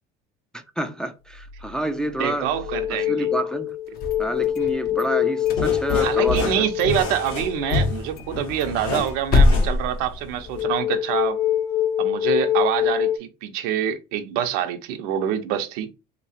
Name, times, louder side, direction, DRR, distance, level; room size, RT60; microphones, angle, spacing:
voice 1, 0.5-2.5 2.9-3.8 4.2-6.7, right 1 dB, 5° left, 0.3 m, -28 dB
sound 1, 1.4-1.7 2.1-8.0 10.5-13.2, left 11 dB, 90° left, 0.5 m, -25 dB
voice 2, 2.2-3.3 6.0-11.4 12.0-15.9, right 10 dB, 85° right, 0.7 m, -26 dB
sound 2, 3.9-5.0 5.4-6.5 6.8-6.9 7.3-7.4 7.7-7.8 8.2-10.8, left 3 dB, 50° left, 0.7 m, -23 dB
sound 3, 5.4-10.6, left 3 dB, 75° left, 1.3 m, -28 dB
3.3 x 3.0 x 2.7 m
cardioid pair, 125°, 20 cm